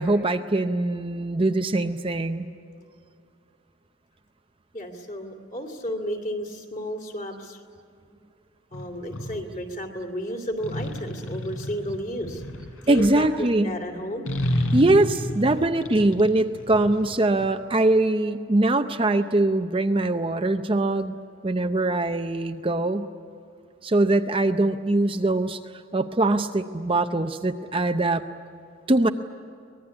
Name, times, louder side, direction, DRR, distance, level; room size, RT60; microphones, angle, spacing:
voice 1, 0.0-2.5 12.9-13.7 14.7-21.1 21.4-23.1 23.8-25.6 25.9-28.2 28.9-29.1, right 2 dB, 25° right, 6 dB, 0.6 m, -22 dB
voice 2, 4.7-7.6 8.7-12.4 12.8-14.3, equal, 35° left, 4 dB, 2.7 m, -33 dB
sound 1, 8.7-9.4 10.6-13.4 14.3-17.5, left 1 dB, 85° left, 4.0 m, -30 dB
24.5 x 20.0 x 9.7 m, 2.5 s
head